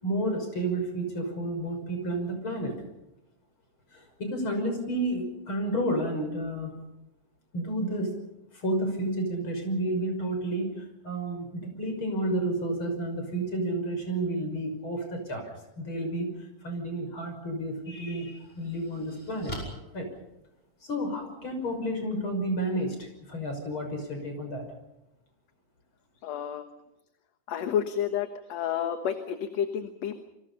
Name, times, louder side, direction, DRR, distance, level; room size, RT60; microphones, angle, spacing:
voice 1, 0.0-2.8 3.9-6.7 7.5-8.2 8.5-15.5 15.8-19.5 19.9-20.1 20.8-24.6, right 1 dB, 40° left, 5 dB, 6.8 m, -31 dB
sound 1, 17.2-17.4 18.0-21.0, equal, 20° left, 7.2 m, -43 dB
voice 2, 26.2-26.7 27.5-30.2, left 9 dB, 65° left, 7 dB, 2.4 m, -30 dB
28.0 x 24.5 x 5.6 m, 0.95 s
omnidirectional pair, 3.4 m